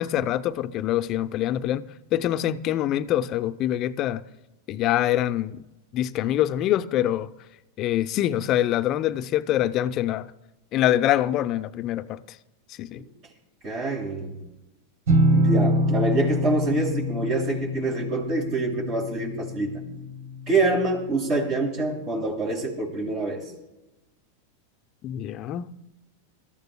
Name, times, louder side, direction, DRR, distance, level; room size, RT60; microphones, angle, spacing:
voice 1, 0.0-4.3 4.7-5.6 5.9-7.3 7.8-10.3 10.7-12.2 12.8-13.0 25.0-25.7, left 12 dB, 45° left, 0.6 m, -25 dB
voice 2, 13.6-14.3 15.3-19.8 20.5-23.5, right 2 dB, 45° right, 6.3 m, -26 dB
sound 1, 15.1-20.7, equal, 75° right, 1.8 m, -25 dB
26.0 x 14.0 x 2.3 m
hypercardioid pair, 105°, 0 cm